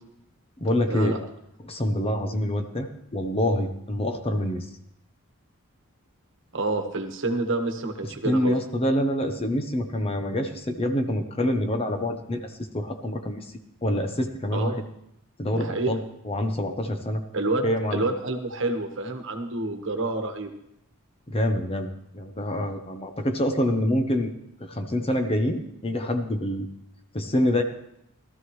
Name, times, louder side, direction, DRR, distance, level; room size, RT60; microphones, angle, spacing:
voice 1, 0.6-1.2 1.6-4.7 8.2-13.4 13.8-14.7 15.4-17.2 17.6-18.1 21.3-24.3 24.6-26.7 27.1-27.6, left 1 dB, 25° left, 6 dB, 0.9 m, -26 dB
voice 2, 6.5-8.6 14.5-14.8 15.5-15.9 17.3-20.6, right 2 dB, 55° right, 5 dB, 1.3 m, -28 dB
16.5 x 13.0 x 3.1 m, 0.77 s
head